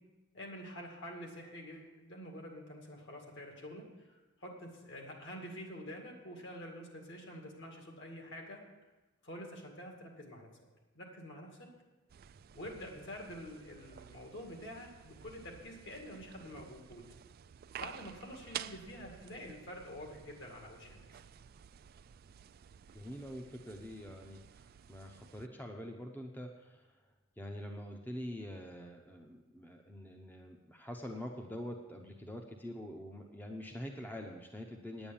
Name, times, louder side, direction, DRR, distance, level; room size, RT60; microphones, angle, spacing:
voice 1, 0.3-8.6 9.2-10.5 10.9-11.7 12.5-17.1 17.8-21.0, equal, 60° left, 1 dB, 2.3 m, -47 dB
sound 1, 12.1-25.5, right 9 dB, 45° right, 0.3 m, -51 dB
voice 2, 22.9-35.1, equal, 10° left, 2 dB, 0.7 m, -45 dB
9.2 x 8.9 x 7.1 m, 1.2 s
head